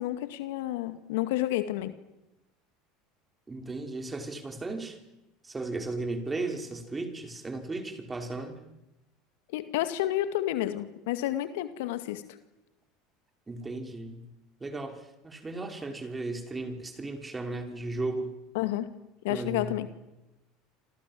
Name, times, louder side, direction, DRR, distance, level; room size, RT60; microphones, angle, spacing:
voice 1, 0.0-1.9 9.5-12.2 18.5-18.9 19.2-19.9, left 14 dB, 70° left, 10 dB, 2.1 m, -30 dB
voice 2, 3.5-5.0 5.4-8.6 13.5-14.3 14.6-18.3 19.3-19.8, right 2 dB, 20° right, 4 dB, 5.9 m, -35 dB
28.0 x 27.0 x 7.8 m, 0.96 s
hypercardioid pair, 75°, 0 cm